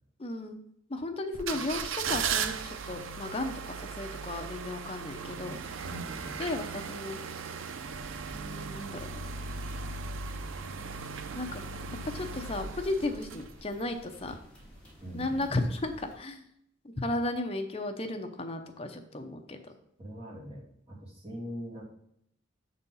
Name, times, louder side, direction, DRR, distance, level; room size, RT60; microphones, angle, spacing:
voice 1, 0.2-0.6 0.9-5.8 6.4-7.2 8.3-9.1 11.3-11.6 12.0-14.3 15.1-16.4 17.0-19.7, left 2 dB, 30° left, 5 dB, 0.7 m, -34 dB
sound 1, 1.3-13.8 14.3-14.4, right 5 dB, 90° right, 0.6 m, -37 dB
voice 2, 5.8-6.3 15.0-15.5 20.0-20.6 20.9-21.9, equal, 30° right, -5 dB, 2.5 m, -41 dB
sound 2, 7.8-16.1, equal, 5° left, 2.0 m, -53 dB
7.1 x 4.1 x 5.5 m, 0.73 s
head